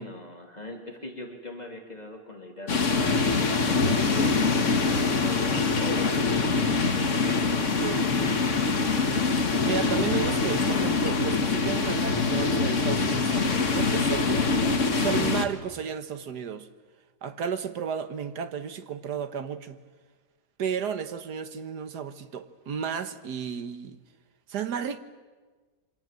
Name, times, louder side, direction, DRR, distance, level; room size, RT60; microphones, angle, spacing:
voice 1, 0.0-3.2 3.7-6.2 7.1-7.8, left 1 dB, 25° left, 3.3 m, -40 dB
sound 1, 2.7-15.5, left 4 dB, 50° left, 1.9 m, -24 dB
voice 2, 7.8-8.4 9.6-14.5 15.0-16.7 17.2-19.8 20.6-24.0 24.5-25.0, right 7 dB, 85° right, 1.8 m, -33 dB
27.0 x 24.5 x 7.6 m
omnidirectional pair, 1.7 m